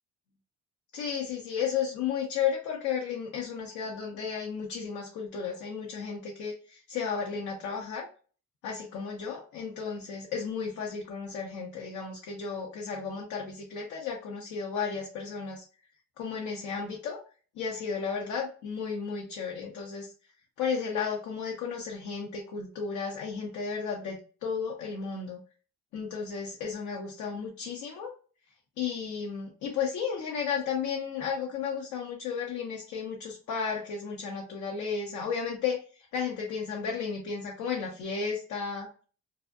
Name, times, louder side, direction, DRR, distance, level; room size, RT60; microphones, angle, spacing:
voice 1, 0.9-8.1 8.6-15.6 16.2-17.2 17.6-20.1 20.6-25.4 25.9-28.1 28.8-39.0, left 6 dB, 90° left, 0 dB, 0.6 m, -33 dB
2.6 x 2.0 x 2.3 m, 0.39 s
cardioid pair, 90°, 30 cm